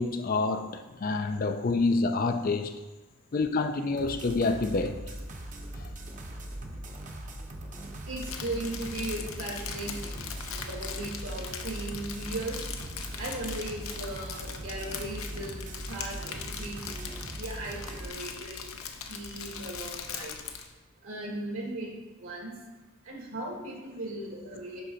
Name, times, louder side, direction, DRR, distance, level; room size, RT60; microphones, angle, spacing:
voice 1, 0.0-2.8 3.3-5.0 5.8-5.9, left 3 dB, 40° left, 0.4 m, -27 dB
sound 1, 4.0-18.1, right 1 dB, 35° right, 0.8 m, -40 dB
Crumpling crinkling, 8.1-20.7, left 6 dB, 75° left, 0.8 m, -41 dB
voice 2, 8.1-12.6 13.2-18.6 19.1-20.3 21.0-21.9 22.2-22.5 23.1-24.8, right 1 dB, 65° right, 2.1 m, -37 dB
9.4 x 3.8 x 5.6 m
head